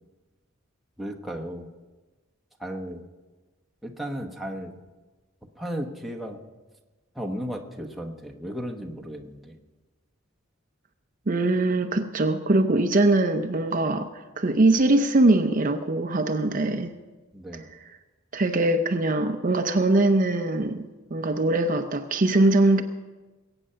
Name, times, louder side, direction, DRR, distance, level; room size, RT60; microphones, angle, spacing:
voice 1, 1.0-1.7 2.6-3.1 3.8-4.7 5.6-6.4 7.1-9.6 17.3-17.7, equal, ahead, 0 dB, 1.1 m, -35 dB
voice 2, 11.3-16.9 18.3-22.8, right 2 dB, 40° right, 6 dB, 0.6 m, -22 dB
22.0 x 8.9 x 5.6 m, 1.2 s
head